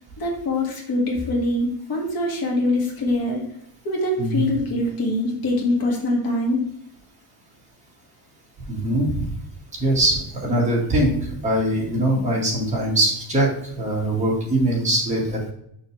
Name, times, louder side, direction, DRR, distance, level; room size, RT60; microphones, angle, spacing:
voice 1, 0.2-3.4 3.8-6.7, left 1 dB, 50° left, 0 dB, 2.0 m, -23 dB
voice 2, 8.7-9.3 9.8-13.5 13.8-15.5, right 1 dB, 15° right, -4 dB, 1.8 m, -22 dB
6.6 x 5.5 x 3.3 m, 0.72 s
cardioid pair, 180°, 44 cm